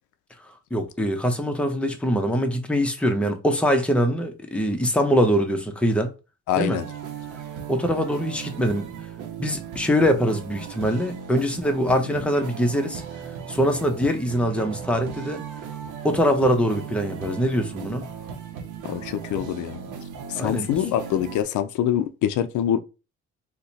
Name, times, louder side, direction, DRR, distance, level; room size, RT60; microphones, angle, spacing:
voice 1, 0.7-6.1 6.6-6.8 7.7-8.9 9.4-13.0 13.5-15.4 16.0-18.1 20.3-20.7, equal, 5° left, 0.7 m, -23 dB
voice 2, 6.5-6.9 18.8-19.8 20.3-22.8, left 10 dB, 75° left, 0.5 m, -25 dB
sound 1, 6.7-21.4, right 7 dB, 85° right, 0.7 m, -37 dB
2.8 x 2.2 x 3.9 m
cardioid pair, 90°, 30 cm